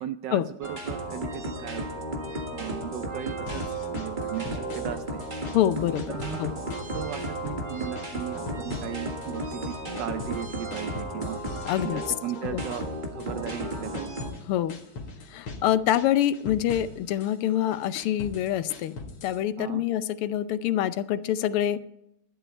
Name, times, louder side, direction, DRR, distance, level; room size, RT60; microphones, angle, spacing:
voice 1, 0.0-1.9 2.5-3.6 3.9-5.2 6.1-6.4 6.7-11.4 11.8-12.8 13.2-14.1 19.6-19.8, right 11 dB, 75° right, 10 dB, 1.0 m, -36 dB
sound 1, 0.6-14.3, right 1 dB, 25° right, 1.4 m, -34 dB
sound 2, 3.5-5.0 5.2-6.4 6.7-7.6 8.0-9.4 9.7-14.4 14.7-15.7 15.9-17.3 17.7-19.4, left 3 dB, 70° left, 2.4 m, -41 dB
voice 2, 5.5-6.5 11.7-12.0 12.5-12.6 14.5-14.8 15.3-19.0 19.2-21.9, left 11 dB, 90° left, 14 dB, 1.6 m, -26 dB
12.5 x 11.0 x 4.4 m, 0.80 s
omnidirectional pair, 2.4 m